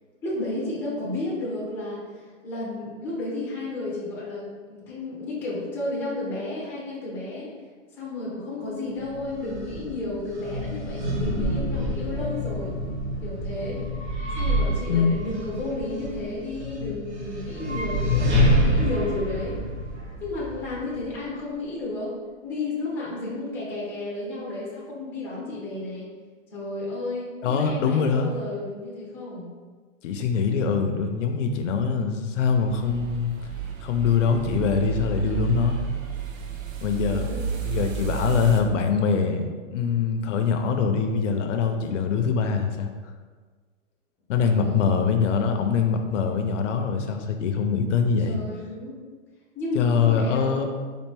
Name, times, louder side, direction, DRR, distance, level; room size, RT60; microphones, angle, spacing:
voice 1, 0.2-7.5 7.9-12.7 13.2-13.8 14.4-19.6 20.2-22.2 22.4-26.1 26.5-29.5 37.1-37.4 44.6-44.8 48.2-49.0 49.5-50.7, left 2 dB, 5° left, -6 dB, 0.5 m, -32 dB
sound 1, 9.0-21.1, equal, 55° right, 1.3 m, -27 dB
voice 2, 27.4-28.3 30.0-33.3 33.8-35.8 36.8-37.3 37.6-42.9 44.3-48.4 49.7-50.7, left 6 dB, 65° left, 5 dB, 0.6 m, -23 dB
sound 2, 32.6-38.6, right 7 dB, 85° right, 0.7 m, -31 dB
4.3 x 2.6 x 3.3 m, 1.5 s
hypercardioid pair, 150°, 39 cm